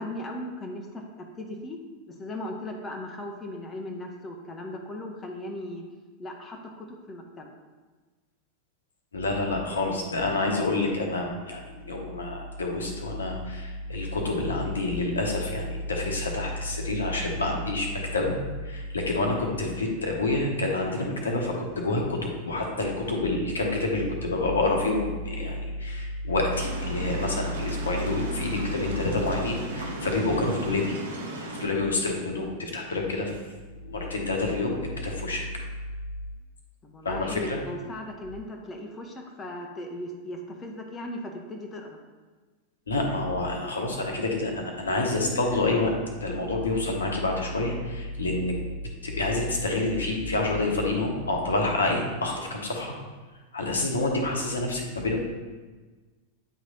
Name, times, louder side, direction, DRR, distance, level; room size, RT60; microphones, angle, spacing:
voice 1, 0.0-1.8 2.1-5.8 6.2-7.5 36.8-42.0, left 1 dB, 20° left, 1 dB, 0.7 m, -37 dB
voice 2, 9.1-18.4 18.6-30.9 31.4-33.4 33.8-35.4 37.0-37.6 42.9-48.6 49.0-52.9 53.5-55.2, left 2 dB, 70° left, 1 dB, 0.9 m, -28 dB
sound 1, 26.5-31.7, right 1 dB, 65° right, 0.9 m, -36 dB
9.0 x 3.2 x 3.9 m, 1.3 s
figure-of-eight pair, 90°, 0 cm